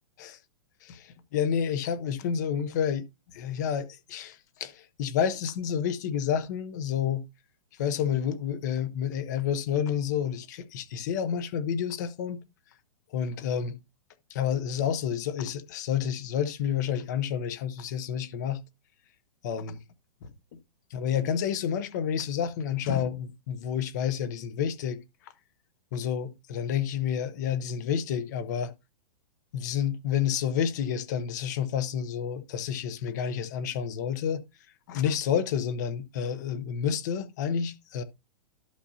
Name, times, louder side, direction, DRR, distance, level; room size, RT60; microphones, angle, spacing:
voice 1, 0.8-3.1 3.3-7.2 7.8-12.4 13.1-13.8 14.3-18.6 19.4-19.8 20.2-20.3 20.9-25.0 25.9-28.7 29.5-34.4 34.9-38.0, left 8 dB, 30° left, 0.6 m, -29 dB
11.5 x 6.6 x 2.7 m
hypercardioid pair, 175°, 20 cm